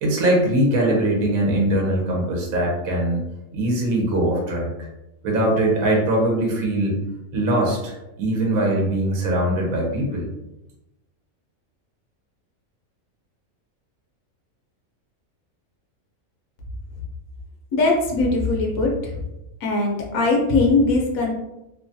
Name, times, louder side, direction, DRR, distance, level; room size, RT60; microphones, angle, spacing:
voice 1, 0.0-3.2 3.5-4.7 5.2-7.0 7.3-10.3, right 1 dB, 80° right, -1 dB, 1.1 m, -21 dB
voice 2, 17.7-19.3 19.6-21.3, left 3 dB, 85° left, -1 dB, 1.1 m, -20 dB
3.0 x 2.2 x 2.6 m, 0.94 s
omnidirectional pair, 1.4 m